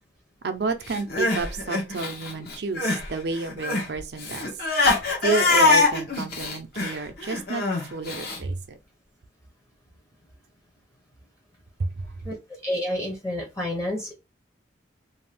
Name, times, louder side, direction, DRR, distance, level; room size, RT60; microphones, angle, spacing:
voice 1, 0.4-4.5 5.2-8.8 11.8-11.9, right 3 dB, 60° right, 0.5 m, -30 dB
Crying sobbing, 0.9-3.1 3.3-8.4, left 3 dB, 50° left, 0.8 m, -24 dB
voice 2, 12.6-14.1, left 1 dB, 15° left, 0.7 m, -29 dB
2.5 x 2.3 x 3.3 m
head